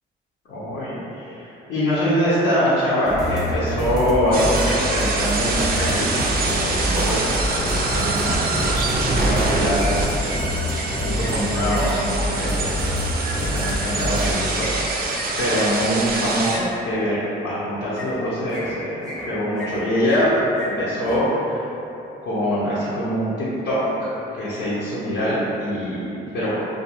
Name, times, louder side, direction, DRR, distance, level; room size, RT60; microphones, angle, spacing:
voice 1, 0.5-8.4 9.0-10.5 10.8-12.8 13.5-19.0 19.3-21.7 22.2-26.5, equal, 70° left, -11 dB, 0.6 m, -24 dB
sound 1, 3.0-14.3, equal, 20° left, 0.4 m, -26 dB
sound 2, 4.3-16.6, right 3 dB, 50° right, 0.4 m, -25 dB
sound 3, 9.0-9.5 9.8-11.8 13.2-16.6 17.9-18.2 18.5-19.3 19.5-20.3 20.6-20.7 21.0-21.2, equal, 5° left, 0.9 m, -36 dB
2.4 x 2.3 x 2.9 m, 3.0 s
cardioid pair, 90°, 20 cm